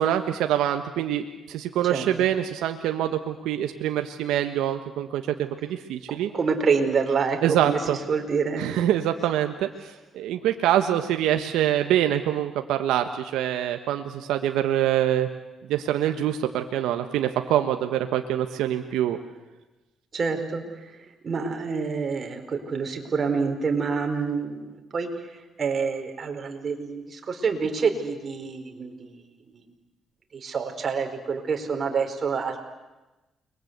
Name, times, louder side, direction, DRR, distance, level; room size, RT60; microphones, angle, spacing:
voice 1, 0.0-6.3 7.4-8.0 8.6-15.3 15.7-19.2, right 11 dB, 90° right, 6 dB, 1.4 m, -25 dB
voice 2, 6.1-7.4 7.6-7.8 8.1-8.9 20.1-20.6 21.2-24.6 24.9-25.1 25.6-29.1 30.4-32.6, right 5 dB, 45° right, 4 dB, 4.8 m, -27 dB
29.5 x 22.5 x 8.2 m, 1.1 s
cardioid pair, 90°, 0 cm